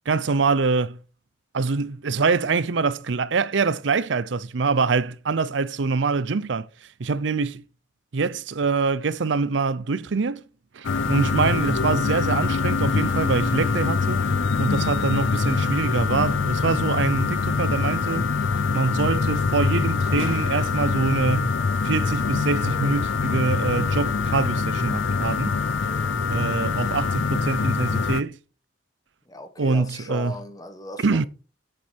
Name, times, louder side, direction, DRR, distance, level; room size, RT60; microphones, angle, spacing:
voice 1, 0.1-1.0 1.5-7.6 8.1-10.4 10.7-14.2 14.6-18.3 18.7-21.6 21.8-25.6 26.3-28.4 29.6-30.4 31.0-31.3, right 4 dB, 75° right, 0.6 m, -24 dB
sound 1, 10.8-28.2, left 4 dB, 80° left, 0.6 m, -24 dB
voice 2, 25.8-26.3 29.3-31.3, left 1 dB, 20° left, 1.3 m, -38 dB
8.2 x 8.2 x 5.1 m
head